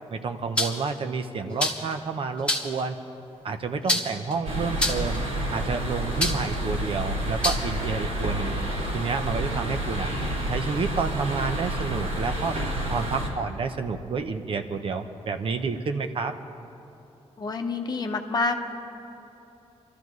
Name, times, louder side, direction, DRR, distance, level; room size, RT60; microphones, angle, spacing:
voice 1, 0.1-3.0 3.4-5.2 5.5-8.5 8.9-10.1 10.5-12.6 12.9-16.3, right 4 dB, 50° right, 7 dB, 0.7 m, -29 dB
sound 1, 0.6-0.9 1.6-1.9 2.5-2.8 3.9-4.3 4.8-5.2 6.2-6.6 7.4-7.6, left 1 dB, 10° left, 1.3 m, -25 dB
sound 2, 4.4-13.3, right 1 dB, 85° right, 4.2 m, -29 dB
voice 2, 17.4-18.5, left 3 dB, 35° left, 5 dB, 0.9 m, -27 dB
26.5 x 13.0 x 3.1 m, 2.9 s
wide cardioid pair, 150°, 12 cm